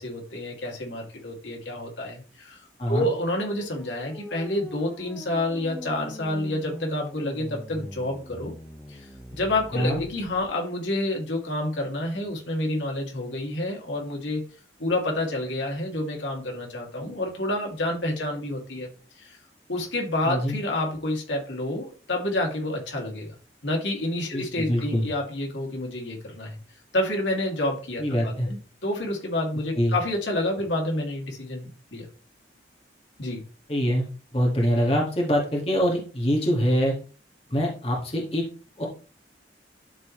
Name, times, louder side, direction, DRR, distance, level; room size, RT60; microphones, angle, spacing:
voice 1, 0.0-2.6 2.9-8.5 8.9-9.0 9.3-14.4 14.8-18.9 19.2-19.4 19.7-23.3 23.6-26.6 26.9-32.0 33.2-33.4, left 1 dB, 85° left, 0 dB, 2.7 m, -29 dB
sound 1, 3.3-10.4, equal, 10° left, 1.3 m, -42 dB
voice 2, 9.7-10.0 20.2-20.6 24.3-25.1 28.0-28.5 29.8-29.9 33.7-34.1 34.3-37.0 37.5-38.5 38.8-38.9, equal, 35° left, -2 dB, 2.0 m, -24 dB
12.0 x 4.2 x 3.3 m, 0.37 s
head